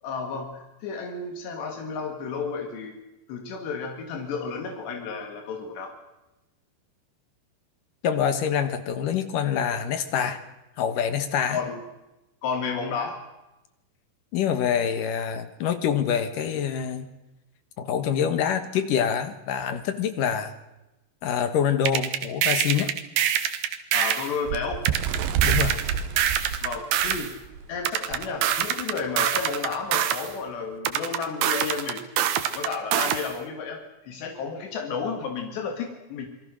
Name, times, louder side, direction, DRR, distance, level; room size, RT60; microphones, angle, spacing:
voice 1, 0.0-3.0 3.3-5.9 11.5-11.8 12.4-13.2 23.9-24.8 26.6-27.3 27.7-32.0 32.5-36.3, left 5 dB, 85° left, 3 dB, 4.4 m, -32 dB
voice 2, 8.0-10.4 10.8-11.6 14.3-17.1 17.8-20.5 21.2-22.9 25.4-25.8, left 8 dB, 65° left, 10 dB, 2.6 m, -25 dB
sound 1, 21.9-24.3 24.9-27.3 27.9-30.3 30.8-33.3, right 10 dB, 75° right, 3.2 m, -25 dB
Bird, 24.5-27.6 28.1-28.3 28.6-28.8 29.6-29.7, right 8 dB, 90° right, 3.4 m, -28 dB
27.5 x 22.0 x 6.4 m, 0.97 s
omnidirectional pair, 4.8 m